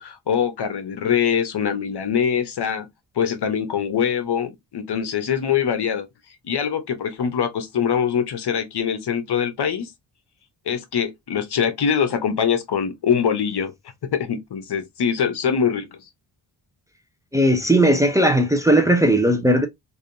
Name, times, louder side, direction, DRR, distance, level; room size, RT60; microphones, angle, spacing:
voice 1, 0.0-2.9 3.2-6.1 6.4-9.9 10.7-13.7 14.1-16.0, left 7 dB, 65° left, 0.8 m, -23 dB
voice 2, 17.3-19.7, right 1 dB, 5° right, 0.6 m, -17 dB
3.4 x 2.6 x 2.6 m
cardioid pair, 80°, 43 cm